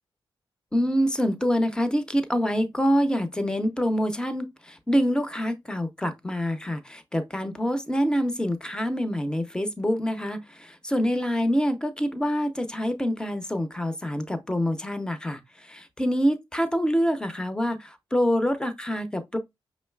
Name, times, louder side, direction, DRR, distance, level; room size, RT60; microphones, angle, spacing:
voice 1, 0.7-19.4, equal, 10° left, 0.5 m, -26 dB
5.0 x 3.1 x 2.2 m
wide cardioid pair, 110°, 9 cm